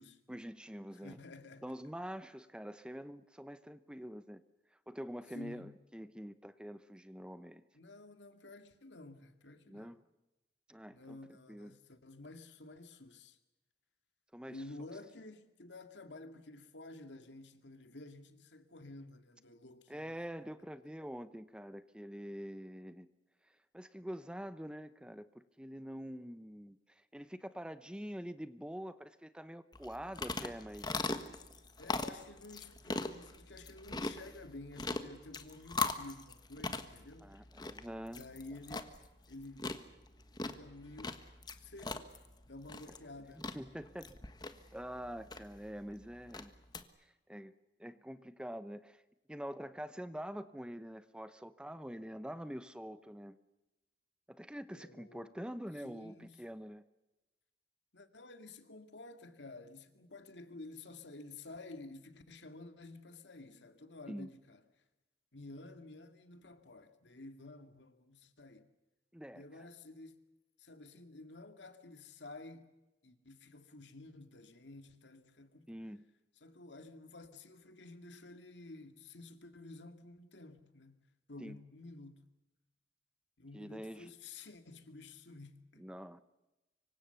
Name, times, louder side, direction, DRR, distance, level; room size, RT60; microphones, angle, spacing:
voice 1, 0.3-1.2 1.6-4.4 4.9-7.6 9.7-10.0 10.7-11.2 11.5-11.7 14.3-14.6 19.9-23.1 23.7-31.0 37.2-38.3 42.9-43.0 43.3-44.1 44.7-46.5 47.0-47.5 47.8-49.0 49.3-53.4 54.3-56.8 64.1-64.3 69.1-69.7 75.7-76.0 81.4-81.6 83.5-84.1 85.8-86.2, equal, 5° right, 0.8 m, -45 dB
voice 2, 0.9-1.8 5.3-5.8 7.7-10.0 10.9-13.4 14.5-20.2 31.8-37.5 38.1-39.0 39.3-39.7 40.4-41.2 41.5-42.1 42.5-43.6 54.7-55.5 55.8-56.4 57.9-64.6 65.3-68.7 69.3-70.2 70.6-72.7 73.0-75.8 76.4-82.3 83.4-85.9, left 2 dB, 85° left, 2.2 m, -52 dB
sound 1, 29.7-46.8, left 3 dB, 25° left, 1.4 m, -41 dB
25.5 x 24.5 x 6.9 m
head